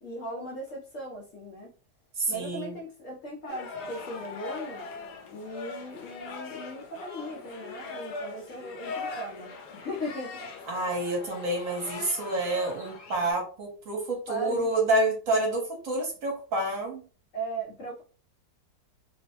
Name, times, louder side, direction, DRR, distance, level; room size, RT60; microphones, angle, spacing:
voice 1, 0.0-1.7 2.3-4.9 5.3-10.5 14.3-14.7 17.3-18.0, right 1 dB, 60° left, -1 dB, 0.9 m, -38 dB
voice 2, 2.3-2.7 10.7-17.0, right 1 dB, 55° right, -1 dB, 1.2 m, -28 dB
sound 1, 3.5-13.3, left 3 dB, 80° left, 1.2 m, -40 dB
3.1 x 2.1 x 2.8 m, 0.37 s
omnidirectional pair, 1.8 m